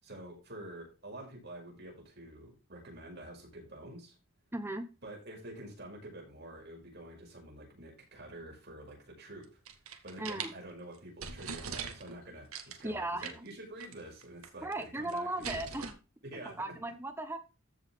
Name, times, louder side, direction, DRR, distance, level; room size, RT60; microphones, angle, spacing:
voice 1, 0.0-4.2 5.0-9.6 10.0-14.7 14.9-15.6 16.2-16.5, right 1 dB, 50° right, -1 dB, 5.8 m, -48 dB
voice 2, 4.5-4.9 10.2-10.5 12.8-13.4 14.6-16.0 16.4-17.4, right 1 dB, 10° right, 8 dB, 1.1 m, -37 dB
sound 1, 9.4-10.5 10.9-11.0 11.2-12.2 12.5-12.8 13.2-13.5 13.8-13.9 14.2-14.8 15.1-15.9, right 6 dB, 85° right, 1.6 m, -41 dB
14.5 x 5.5 x 3.6 m, 0.31 s
head